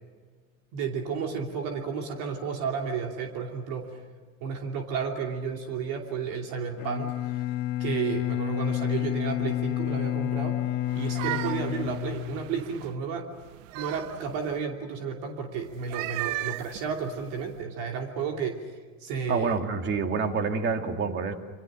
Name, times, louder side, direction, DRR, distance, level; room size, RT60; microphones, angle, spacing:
voice 1, 0.7-4.0 4.4-7.4 7.8-10.6 10.9-13.3 13.7-18.6 19.0-19.6, right 6 dB, 55° right, 2 dB, 2.9 m, -32 dB
Bowed string instrument, 6.8-12.8, left 14 dB, 70° left, 1.9 m, -30 dB
sound 1, 10.9-12.9 13.4-14.6 15.7-17.6, right 18 dB, 70° right, 0.8 m, -36 dB
voice 2, 19.3-21.3, right 5 dB, 30° right, 5 dB, 2.2 m, -27 dB
28.0 x 26.0 x 6.3 m, 1.5 s
supercardioid pair, 155°, 40 cm